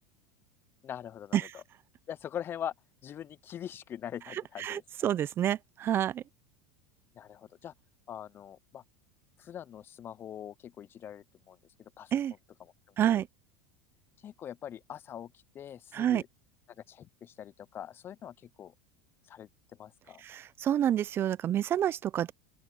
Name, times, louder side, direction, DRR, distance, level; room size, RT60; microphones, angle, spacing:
voice 1, 0.8-1.6 2.1-2.7 3.0-4.8 7.1-7.7 8.1-8.8 9.4-12.1 12.6-12.7 13.2-13.3 14.2-16.3 16.9-18.7 19.3-19.5 19.8-20.2, left 9 dB, 35° left, 0.7 m, -43 dB
voice 2, 4.3-6.2 12.1-12.3 13.0-13.3 15.9-16.2 20.2-22.3, right 10 dB, 35° right, 0.7 m, -29 dB
open air
hypercardioid pair, 100°, 6 cm